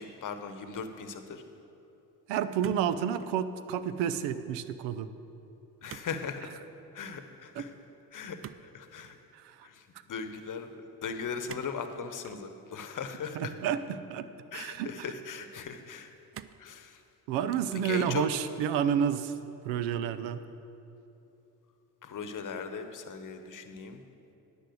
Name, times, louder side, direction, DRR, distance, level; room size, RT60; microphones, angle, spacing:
voice 1, 0.0-1.4 5.8-6.5 6.9-7.7 8.1-9.2 9.6-10.7 11.0-13.5 14.5-16.1 16.6-17.0 17.7-18.2 22.0-24.0, left 6 dB, 40° left, 8 dB, 1.0 m, -39 dB
voice 2, 2.3-5.1 7.6-7.7 9.3-9.7 13.3-14.3 14.5-15.1 17.3-19.3 19.6-20.4, right 8 dB, 70° right, 13 dB, 0.7 m, -30 dB
sound 1, 2.6-3.4 3.7-4.2 5.9-6.2 6.4-6.7 8.4-9.2 11.5-11.8 12.2-12.4 13.4-14.1 14.8-14.9 16.3-16.7 17.3-17.8 18.1-18.5, right 10 dB, 30° right, 0.4 m, -48 dB
10.5 x 5.4 x 7.9 m, 2.9 s
hypercardioid pair, 50°, 46 cm